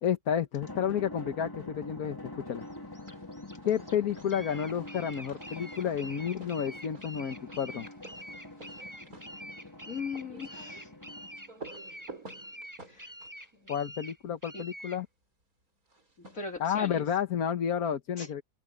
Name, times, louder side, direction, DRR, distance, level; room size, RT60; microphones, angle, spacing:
voice 1, 0.0-2.6 3.6-7.9 13.7-15.1 16.6-18.4, left 8 dB, 85° left, 1.6 m, -31 dB
Drum, 0.6-11.6, left 1 dB, 15° left, 2.0 m, -46 dB
sound 1, 2.6-15.0, equal, 10° right, 7.7 m, -46 dB
sound 2, 2.8-3.3 3.6-14.6 15.9-17.1, right 3 dB, 80° right, 6.1 m, -52 dB
voice 2, 9.9-10.9 12.9-13.1 14.5-14.6 16.3-17.0 18.2-18.3, left 5 dB, 65° left, 3.1 m, -39 dB
open air
omnidirectional pair, 1.5 m